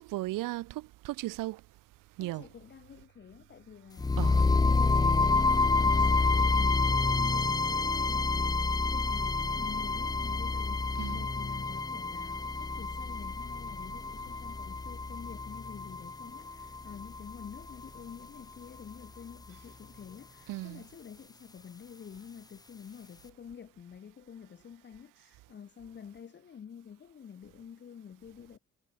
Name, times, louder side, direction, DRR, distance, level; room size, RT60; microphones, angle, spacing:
voice 1, 0.0-1.6 2.2-2.5 4.2-4.4 11.0-11.2 20.5-20.8, right 18 dB, 85° right, 2.2 m, -36 dB
voice 2, 2.2-28.6, left 7 dB, 35° left, 6.5 m, -48 dB
sound 1, 4.0-18.0, left 3 dB, 10° left, 0.9 m, -28 dB
cardioid pair, 155°, 31 cm